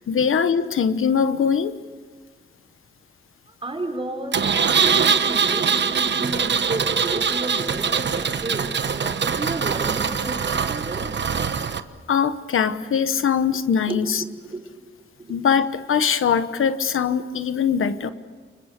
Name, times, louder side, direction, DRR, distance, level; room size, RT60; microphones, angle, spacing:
voice 1, 0.1-1.7 12.1-14.2 15.3-18.1, left 7 dB, 85° left, 11 dB, 1.1 m, -21 dB
voice 2, 3.6-4.4 4.8-11.1 13.8-14.6 15.3-15.4, right 2 dB, 25° right, 2 dB, 4.8 m, -32 dB
Engine, 4.3-11.8, right 6 dB, 60° right, 1.1 m, -23 dB
30.0 x 25.5 x 6.7 m, 1.5 s
wide cardioid pair, 125°, 21 cm